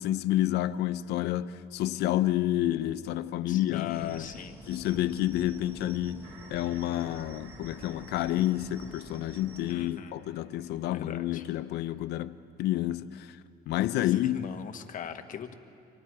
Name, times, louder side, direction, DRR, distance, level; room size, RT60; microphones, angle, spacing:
voice 1, 0.0-4.3 4.7-13.4 13.7-14.5, left 14 dB, 80° left, 0.7 m, -29 dB
voice 2, 3.5-4.6 9.7-10.2 10.9-11.4 14.0-15.5, left 7 dB, 50° left, 1.5 m, -42 dB
sound 1, 3.9-9.7, right 2 dB, 10° right, 1.6 m, -48 dB
sound 2, 6.2-11.9, right 4 dB, 75° right, 3.0 m, -57 dB
29.5 x 25.0 x 4.8 m
cardioid pair, 110°, 17 cm